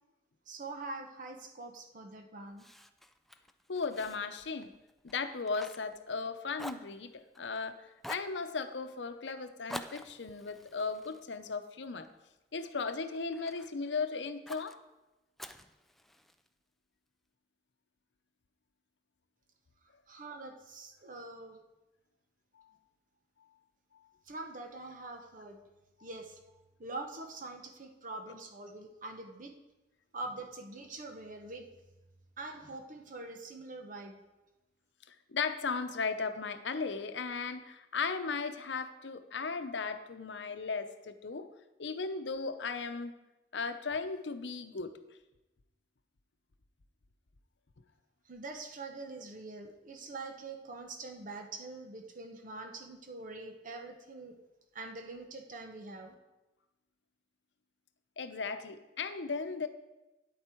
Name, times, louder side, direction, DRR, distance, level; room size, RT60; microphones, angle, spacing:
voice 1, 0.5-2.6 20.1-21.6 24.3-25.6 26.0-26.4 26.8-29.5 30.1-31.7 32.4-34.2 48.3-54.4 54.7-56.1, right 2 dB, 50° right, 5 dB, 0.9 m, -44 dB
Fire, 2.6-6.3 6.5-7.6 8.0-8.4 9.7-12.1 12.6-13.7 14.5-14.8 15.4-16.5, equal, ahead, 0.3 m, -48 dB
voice 2, 3.7-4.7 5.0-12.1 12.5-14.8 22.6-22.7 35.1-41.5 41.8-43.1 43.5-44.9 58.2-59.7, left 4 dB, 80° left, 9 dB, 0.7 m, -36 dB
9.4 x 8.1 x 4.5 m, 1.0 s
head